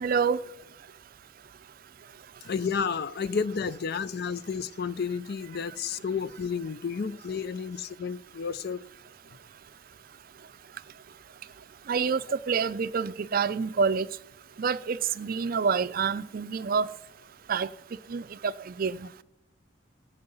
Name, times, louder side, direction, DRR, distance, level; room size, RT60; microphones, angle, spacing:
voice 1, 0.0-0.4 11.9-14.1 14.6-16.9 17.5-17.7 18.1-19.1, right 6 dB, 50° right, 0.4 m, -27 dB
voice 2, 2.4-8.8, left 6 dB, 55° left, 0.5 m, -31 dB
13.5 x 7.8 x 5.4 m
head